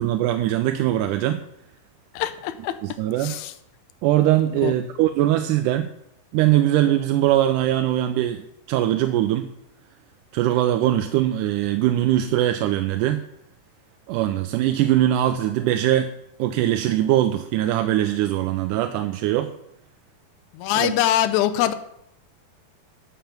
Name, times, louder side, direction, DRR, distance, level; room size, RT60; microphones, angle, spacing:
voice 1, 0.0-1.4 2.8-3.4 4.0-5.9 6.3-8.4 8.7-9.5 10.3-13.2 14.1-19.5 20.8-20.9, right 13 dB, 80° right, 7 dB, 1.9 m, -21 dB
voice 2, 2.1-2.8 3.2-3.5 4.6-4.7 20.5-21.7, left 12 dB, 85° left, 10 dB, 1.7 m, -23 dB
8.7 x 7.3 x 5.9 m, 0.78 s
omnidirectional pair, 4.1 m